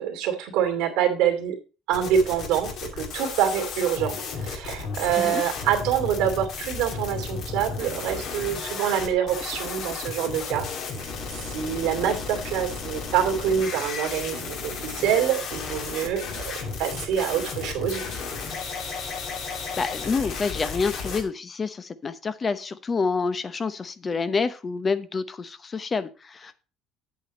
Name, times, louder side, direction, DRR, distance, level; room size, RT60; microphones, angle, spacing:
voice 1, 0.0-1.6 1.9-10.7 11.0-16.5 16.8-18.3, right 9 dB, 85° right, 5 dB, 2.5 m, -26 dB
sound 1, 1.9-21.2, left 5 dB, 65° left, 2.7 m, -33 dB
voice 2, 19.8-26.7, left 4 dB, 30° left, 13 dB, 0.8 m, -28 dB
8.4 x 8.4 x 4.1 m, 0.33 s
cardioid pair, 110°, 0 cm